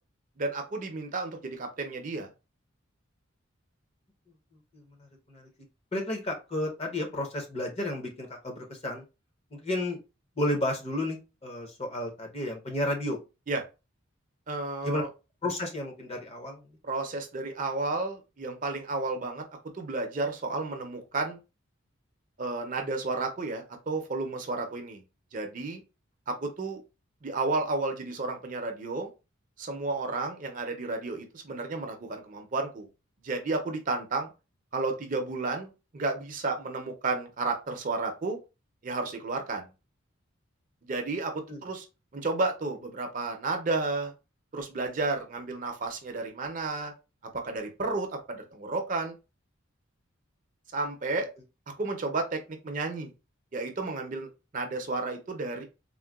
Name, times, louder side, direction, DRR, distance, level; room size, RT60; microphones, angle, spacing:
voice 1, 0.4-2.3 13.5-13.6 14.5-15.1 16.8-19.4 19.7-21.4 22.4-25.0 25.3-25.8 26.3-26.8 27.2-29.1 29.6-32.9 33.2-34.3 34.7-38.4 38.8-39.7 40.8-41.9 42.1-44.1 44.5-46.9 47.3-49.2 50.7-51.3 51.8-53.1 53.5-54.3 54.5-55.6, right 3 dB, 40° right, 4 dB, 0.5 m, -32 dB
voice 2, 5.9-9.0 9.5-10.0 10.4-13.2 14.8-15.0 15.4-16.6 41.5-41.6, left 1 dB, 30° left, 2 dB, 0.7 m, -32 dB
3.7 x 2.1 x 2.3 m, 0.28 s
head